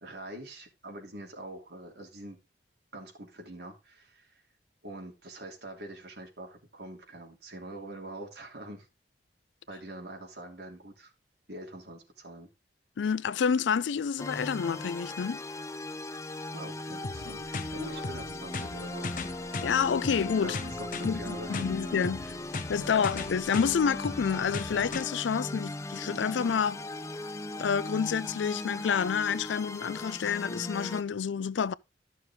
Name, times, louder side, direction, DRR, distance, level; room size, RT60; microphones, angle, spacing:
voice 1, 0.0-2.4 2.9-4.4 4.8-8.9 9.7-11.1 11.5-12.5 16.5-19.5 20.4-21.8 22.2-22.4 22.8-23.0, right 1 dB, 60° right, 3.1 m, -44 dB
voice 2, 13.0-15.4 19.6-20.6 21.0-22.3 22.7-26.8 27.6-31.7, left 6 dB, 80° left, 0.4 m, -28 dB
sound 1, 14.2-31.0, left 2 dB, 15° left, 0.5 m, -38 dB
sound 2, 17.0-25.0, left 3 dB, 45° left, 0.8 m, -39 dB
12.5 x 6.5 x 3.7 m
head